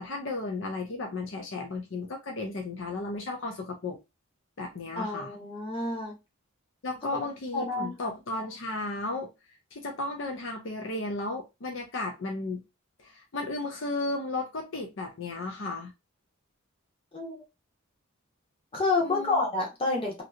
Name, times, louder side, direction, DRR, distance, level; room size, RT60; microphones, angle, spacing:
voice 1, 0.0-4.0 4.6-5.3 6.8-9.3 9.7-12.6 13.0-15.9 19.0-19.4, left 2 dB, 60° left, 0.6 m, -34 dB
voice 2, 5.0-6.1 7.5-7.9 17.1-17.4 18.7-20.2, left 3 dB, 25° left, 1.1 m, -29 dB
2.9 x 2.8 x 2.4 m
head